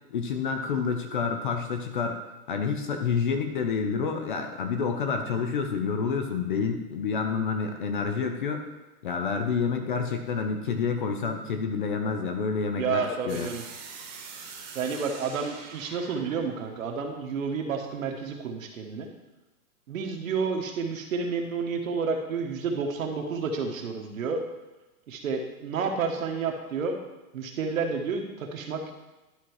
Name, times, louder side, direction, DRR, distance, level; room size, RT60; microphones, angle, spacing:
voice 1, 0.1-2.2 2.5-8.6 9.0-13.5, left 5 dB, 35° left, 5 dB, 0.7 m, -28 dB
voice 2, 12.8-13.6 14.7-19.1 19.9-24.4 25.1-27.0 27.3-28.9, right 5 dB, 60° right, 3 dB, 1.5 m, -30 dB
sound 1, 13.3-18.1, right 5 dB, 30° right, 1.4 m, -44 dB
11.5 x 4.2 x 4.7 m, 1.1 s
hypercardioid pair, 165°, 45 cm